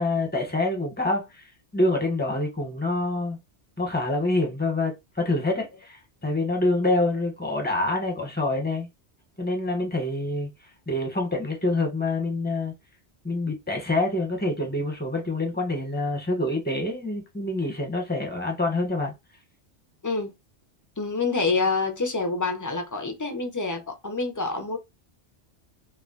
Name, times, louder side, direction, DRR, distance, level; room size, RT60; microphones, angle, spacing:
voice 1, 0.0-1.4 1.7-3.4 3.8-8.9 9.4-10.5 10.9-12.7 13.2-19.1, left 2 dB, 10° left, 0.8 m, -26 dB
voice 2, 21.0-24.8, left 3 dB, 30° left, 0.3 m, -27 dB
2.3 x 2.2 x 3.7 m
omnidirectional pair, 1.1 m